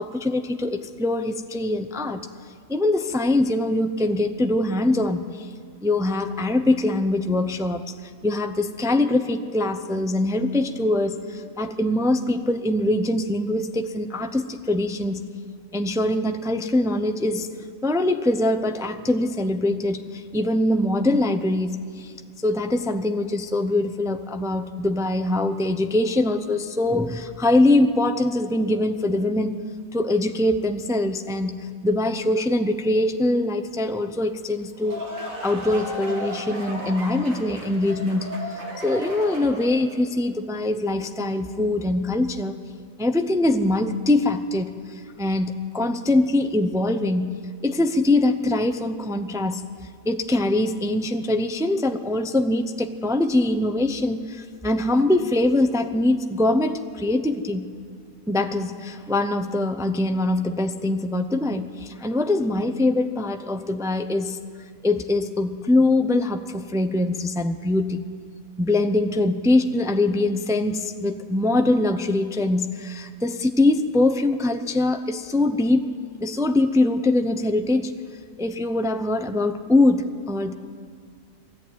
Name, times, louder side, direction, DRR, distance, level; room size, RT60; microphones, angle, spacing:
voice 1, 0.0-2.3 2.7-5.5 5.8-15.3 15.7-17.5 17.8-22.1 22.4-29.5 29.9-35.0 35.4-42.6 43.0-49.7 50.0-57.6 58.3-64.4 64.8-68.1 68.6-75.8 76.2-77.9 78.4-80.5, left 2 dB, 5° right, 7 dB, 0.4 m, -23 dB
sound 1, 34.6-39.9, right 1 dB, 75° right, 3.3 m, -35 dB
20.5 x 14.0 x 9.3 m, 2.1 s
omnidirectional pair, 1.4 m